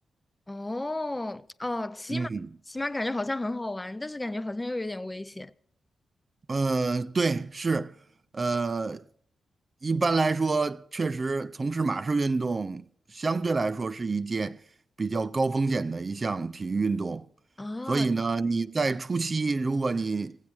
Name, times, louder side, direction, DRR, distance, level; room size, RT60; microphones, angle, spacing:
voice 1, 0.5-2.3 2.7-5.5 17.6-18.1, left 2 dB, 20° left, 0.5 m, -33 dB
voice 2, 2.1-2.5 6.5-8.0 8.3-9.0 9.8-12.8 13.1-14.6 15.0-17.3 17.9-20.4, right 3 dB, 40° right, 0.4 m, -27 dB
16.0 x 8.1 x 6.1 m
supercardioid pair, 55°, 0 cm